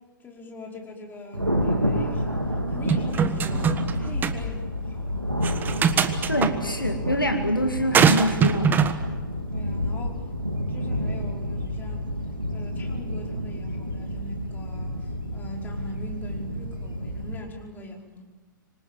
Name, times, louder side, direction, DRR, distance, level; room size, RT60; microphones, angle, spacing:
voice 1, 0.2-5.4 9.5-10.3 10.7-12.2 12.5-18.2, left 1 dB, 15° left, 1 dB, 5.2 m, -42 dB
Thunder, 1.3-17.4, equal, 90° right, 3.3 m, -29 dB
sound 1, 2.9-3.9 4.2-4.4 5.4-6.5 7.9-9.0, right 7 dB, 15° right, 1.4 m, -21 dB
voice 2, 6.3-8.9, equal, 90° left, 5 dB, 2.2 m, -25 dB
26.5 x 25.0 x 7.5 m, 1.2 s
figure-of-eight pair, 110°, 11 cm